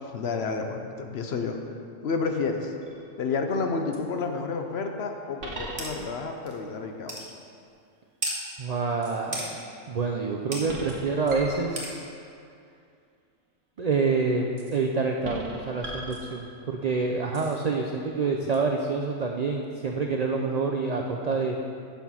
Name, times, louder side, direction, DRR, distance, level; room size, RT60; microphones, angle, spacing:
voice 1, 0.1-1.6 2.0-2.7 3.2-7.3, left 4 dB, 60° left, 4 dB, 0.8 m, -30 dB
sound 1, 2.8-3.2 3.9-4.0 5.4-6.3 9.0-9.5 10.6-12.2 14.6-14.9 15.2-16.8 17.3-17.6 18.5-18.6, right 2 dB, 55° right, 1.2 m, -40 dB
sound 2, 5.8-5.9 6.5-6.6 7.1-7.3 8.2-8.4 9.3-9.5 10.5-10.6 11.8-11.9, right 1 dB, 25° right, 1.2 m, -32 dB
voice 2, 8.6-9.5 9.9-12.1 13.8-21.6, right 4 dB, 85° right, 1 dB, 0.3 m, -27 dB
7.2 x 5.9 x 5.6 m, 2.4 s
omnidirectional pair, 1.4 m